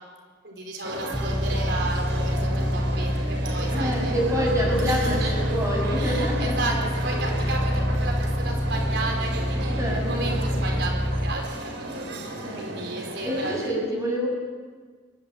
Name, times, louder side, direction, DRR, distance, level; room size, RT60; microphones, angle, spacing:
voice 1, 0.4-4.1 4.8-5.3 6.0-13.7, right 2 dB, 70° right, 1 dB, 4.7 m, -34 dB
sound 1, 0.8-13.7, right 1 dB, 85° right, 4.1 m, -34 dB
sound 2, 1.1-11.3, equal, ahead, 0.8 m, -26 dB
voice 2, 3.7-6.6 9.8-10.4 12.4-12.9 13.2-14.3, equal, 20° right, -1 dB, 6.7 m, -27 dB
23.0 x 14.0 x 9.2 m, 1.5 s
head